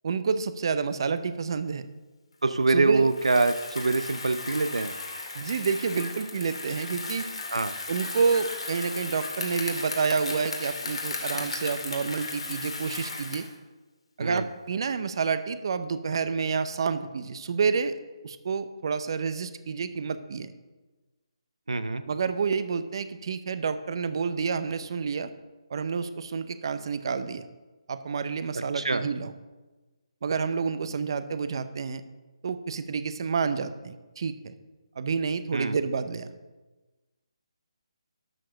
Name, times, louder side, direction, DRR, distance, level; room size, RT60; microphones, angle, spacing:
voice 1, 0.0-1.9 2.7-3.1 5.3-7.3 7.9-13.5 14.2-20.5 22.1-25.3 25.7-27.5 27.9-29.3 30.2-32.0 32.4-34.5 35.0-36.3, right 5 dB, 50° right, 12 dB, 0.7 m, -29 dB
voice 2, 2.4-4.9 7.5-7.7 14.2-14.5 21.7-22.0 28.7-29.0 35.5-35.8, right 3 dB, 90° right, 11 dB, 0.5 m, -25 dB
Bicycle, 3.0-13.6, left 3 dB, 80° left, 2.4 m, -36 dB
12.0 x 4.7 x 6.4 m, 1.2 s
hypercardioid pair, 155°, 3 cm